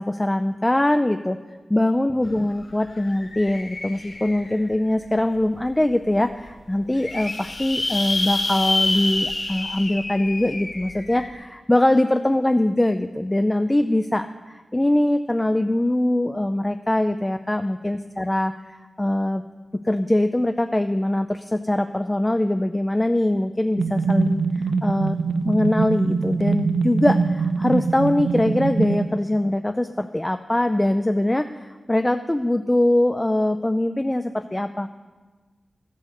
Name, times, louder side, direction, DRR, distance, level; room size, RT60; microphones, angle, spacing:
voice 1, 0.0-1.4 1.7-19.4 19.8-25.2 25.4-34.9, left 1 dB, 15° left, 8 dB, 0.3 m, -22 dB
sound 1, 2.2-2.3 2.6-4.7 5.3-5.4 5.8-5.9 6.1-6.2 6.7-11.3, left 2 dB, 55° left, 1.6 m, -28 dB
sound 2, 23.8-29.1, right 4 dB, 85° right, 0.6 m, -23 dB
14.0 x 8.3 x 6.5 m, 1.3 s
wide cardioid pair, 130°, 0 cm